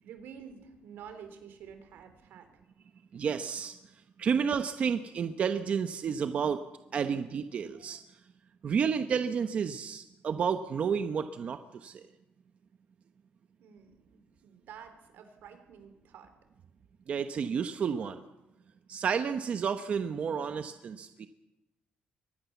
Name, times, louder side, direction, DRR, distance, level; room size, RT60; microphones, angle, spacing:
voice 1, 0.0-2.5 13.6-16.3, right 7 dB, 85° right, 8 dB, 3.7 m, -49 dB
voice 2, 3.1-3.8 4.2-6.6 6.9-8.0 8.6-12.0 17.1-18.2 18.9-21.3, right 6 dB, 40° right, 9 dB, 0.9 m, -31 dB
23.5 x 19.5 x 7.2 m, 0.94 s
cardioid pair, 170°, 3 cm